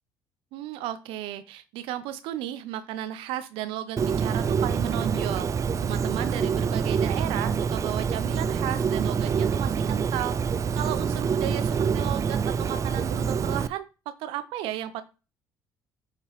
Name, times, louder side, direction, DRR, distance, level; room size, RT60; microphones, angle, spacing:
voice 1, 0.5-5.5 5.8-10.4 10.7-15.0, right 12 dB, 70° right, 12 dB, 0.7 m, -34 dB
Bird, 4.0-13.7, right 6 dB, 35° right, 0.4 m, -26 dB
8.2 x 3.7 x 3.1 m, 0.31 s
hypercardioid pair, 60°, 9 cm